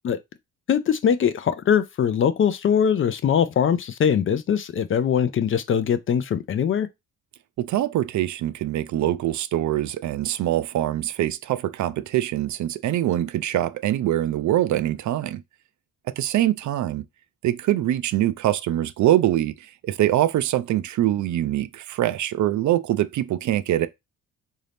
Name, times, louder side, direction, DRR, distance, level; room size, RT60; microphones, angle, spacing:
voice 1, 0.7-6.9, left 8 dB, 40° left, 0.4 m, -22 dB
voice 2, 7.6-15.4 16.1-17.0 17.4-23.9, right 13 dB, 60° right, 0.4 m, -23 dB
3.8 x 2.7 x 3.4 m
cardioid pair, 115°, 33 cm